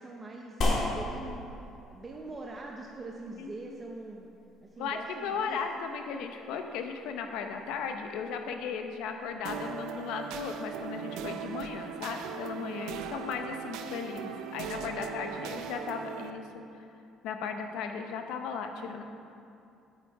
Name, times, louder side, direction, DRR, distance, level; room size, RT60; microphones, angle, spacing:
voice 1, 0.0-1.5 1.9-4.3 4.6-5.6 12.6-13.0 14.8-15.5 17.7-17.8, right 2 dB, 20° right, -1 dB, 0.6 m, -43 dB
sound 1, 0.6-9.3, left 2 dB, 45° left, 1.5 m, -38 dB
voice 2, 3.4-3.8 4.8-16.6 17.2-19.0, left 6 dB, 85° left, 5 dB, 0.8 m, -36 dB
sound 2, 9.4-16.3, right 7 dB, 80° right, 0.5 m, -39 dB
8.6 x 8.2 x 4.7 m, 2.6 s
cardioid pair, 155°, 0 cm